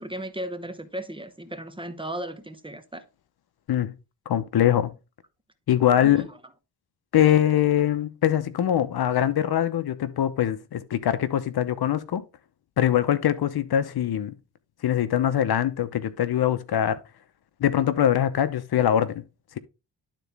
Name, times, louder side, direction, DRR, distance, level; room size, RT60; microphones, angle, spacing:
voice 1, 0.0-3.1 6.0-6.4, right 1 dB, 10° right, 0.9 m, -36 dB
voice 2, 4.3-4.9 5.7-6.2 7.1-12.2 12.8-14.3 14.8-17.0 17.6-19.2, left 10 dB, 65° left, 0.9 m, -22 dB
11.5 x 4.1 x 3.5 m
cardioid pair, 90°, 42 cm